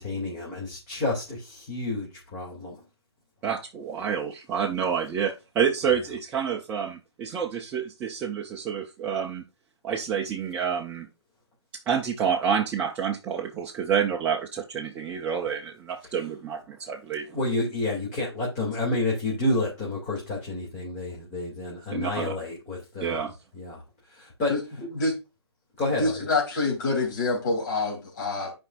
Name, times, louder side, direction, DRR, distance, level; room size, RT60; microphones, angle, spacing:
voice 1, 0.0-2.8 5.8-6.0 16.0-16.3 17.3-23.2 23.5-23.8 24.1-24.8 25.8-26.3, left 2 dB, 25° left, 2.6 m, -30 dB
voice 2, 3.4-9.4 9.8-11.1 11.9-17.3 21.9-22.3 23.0-23.3, right 7 dB, 10° right, 0.5 m, -28 dB
voice 3, 26.0-28.5, left 3 dB, 45° left, 3.0 m, -26 dB
11.0 x 5.1 x 2.5 m
hypercardioid pair, 150°, 14 cm